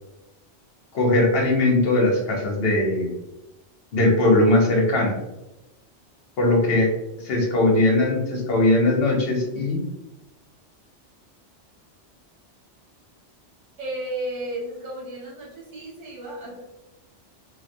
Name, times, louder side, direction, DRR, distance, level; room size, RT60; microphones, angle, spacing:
voice 1, 0.9-3.1 3.9-5.1 6.4-6.9 7.2-9.8, left 2 dB, 60° left, 0 dB, 0.8 m, -20 dB
voice 2, 13.8-16.6, right 1 dB, 80° right, -5 dB, 1.3 m, -33 dB
2.3 x 2.1 x 2.5 m, 0.94 s
omnidirectional pair, 1.2 m